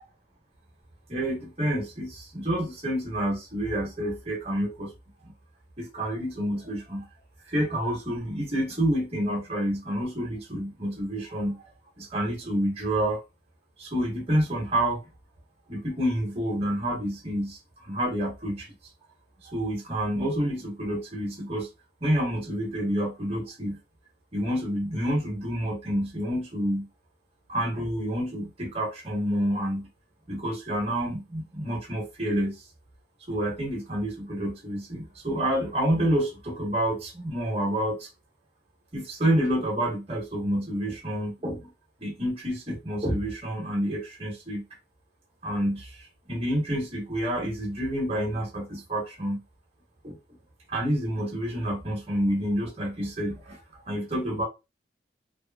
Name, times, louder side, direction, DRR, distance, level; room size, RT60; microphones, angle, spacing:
voice 1, 1.1-4.9 5.8-7.1 7.5-11.6 12.0-13.2 13.8-15.0 15.7-18.7 19.4-21.7 22.0-23.8 24.3-26.9 27.5-29.9 30.3-32.6 33.3-38.1 38.9-41.7 42.0-44.6 45.4-49.4 50.0-50.2 50.7-54.4, equal, 35° right, 1.0 m, -28 dB
2.9 x 2.4 x 2.2 m
head